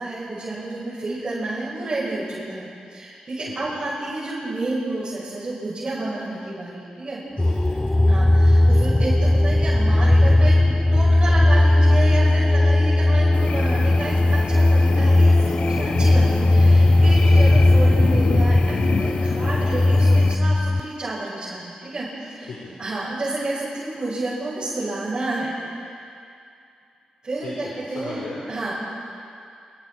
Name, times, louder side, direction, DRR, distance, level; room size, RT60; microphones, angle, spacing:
voice 1, 0.0-7.2 8.0-22.5 22.8-25.5 27.2-28.7, right 2 dB, 35° right, -10 dB, 8.0 m, -30 dB
voice 2, 3.4-3.8 7.4-7.8 13.7-14.1 17.1-17.3 22.4-22.9 27.4-28.4, left 3 dB, 85° left, -6 dB, 4.6 m, -38 dB
sound 1, 7.4-20.8, left 1 dB, 15° left, 0.5 m, -17 dB
sound 2, 13.3-20.4, left 6 dB, 65° left, 1.1 m, -29 dB
28.5 x 24.0 x 4.8 m, 2.5 s
wide cardioid pair, 120°, 2 cm